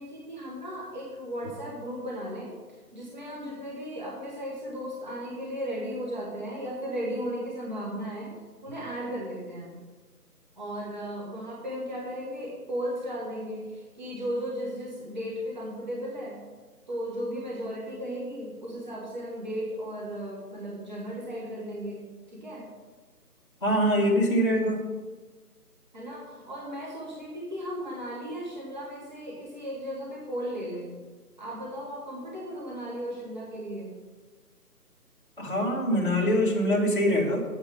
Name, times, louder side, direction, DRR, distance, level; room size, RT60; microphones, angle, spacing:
voice 1, 0.0-9.8 10.6-16.4 16.9-22.7 25.9-30.9 31.4-34.0, equal, 30° right, -5 dB, 1.7 m, -36 dB
voice 2, 23.6-24.8 35.4-37.4, equal, 30° left, -5 dB, 1.9 m, -24 dB
9.7 x 8.6 x 5.0 m, 1.3 s
figure-of-eight pair, 175°, 48 cm